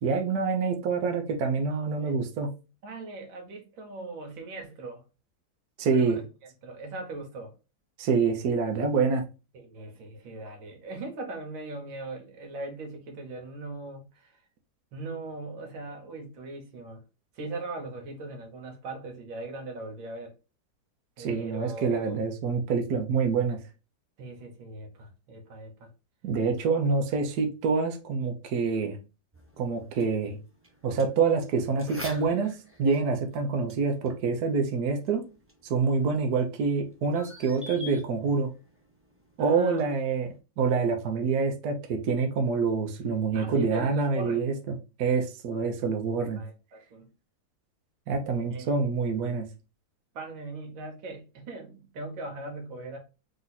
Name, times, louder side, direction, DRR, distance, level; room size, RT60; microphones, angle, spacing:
voice 1, 0.0-2.5 5.8-6.2 8.0-9.2 21.2-23.6 26.2-29.0 29.6-30.4 30.8-35.2 35.6-38.5 39.4-46.4 48.1-49.5, right 5 dB, 60° right, 1.2 m, -26 dB
voice 2, 1.7-2.1 2.8-5.0 5.9-6.2 6.6-7.5 9.5-14.4 14.9-17.0 17.4-20.3 21.2-22.3 24.2-25.9 39.4-39.9 43.3-44.5 46.4-47.1 48.5-48.7 50.1-53.0, right 2 dB, 85° right, 1.9 m, -39 dB
sound 1, 29.3-40.4, left 1 dB, 15° right, 0.5 m, -49 dB
3.9 x 3.0 x 4.0 m
omnidirectional pair, 2.1 m